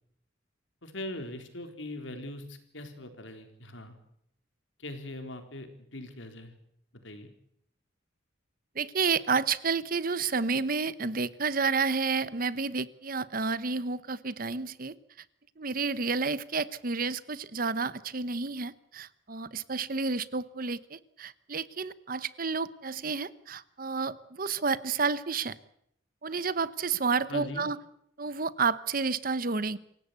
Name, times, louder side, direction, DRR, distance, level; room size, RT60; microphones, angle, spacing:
voice 1, 0.8-4.0 4.8-6.5 7.0-7.3 27.3-27.7, left 1 dB, 80° left, 6 dB, 4.1 m, -41 dB
voice 2, 8.7-15.0 15.6-25.6 26.2-27.8 28.2-29.8, right 4 dB, 45° right, 17 dB, 1.0 m, -30 dB
27.0 x 17.0 x 8.3 m, 0.72 s
head